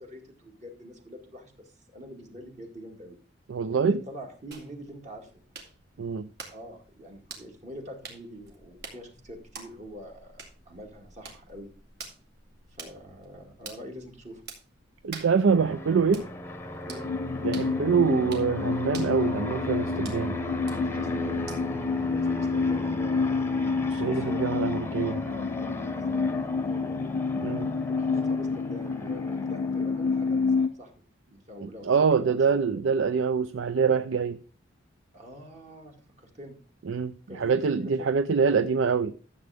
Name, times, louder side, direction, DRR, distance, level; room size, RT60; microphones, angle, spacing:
voice 1, 0.0-3.2 3.6-5.4 6.5-11.7 12.7-14.4 16.8-17.1 20.6-23.5 24.1-27.4 28.0-32.5 35.1-36.6 37.3-38.1, equal, 35° right, 2.1 m, -45 dB
voice 2, 3.5-4.0 6.0-6.3 15.0-16.3 17.4-20.3 23.9-25.2 27.4-27.7 31.6-34.4 36.9-39.1, right 5 dB, 75° right, 0.4 m, -25 dB
sound 1, 4.5-21.9, right 4 dB, 55° right, 2.4 m, -48 dB
Fixed-wing aircraft airplane, 15.5-30.7, left 1 dB, 10° left, 0.9 m, -36 dB
sound 2, 17.0-30.7, left 4 dB, 75° left, 0.4 m, -29 dB
13.0 x 7.7 x 3.5 m
head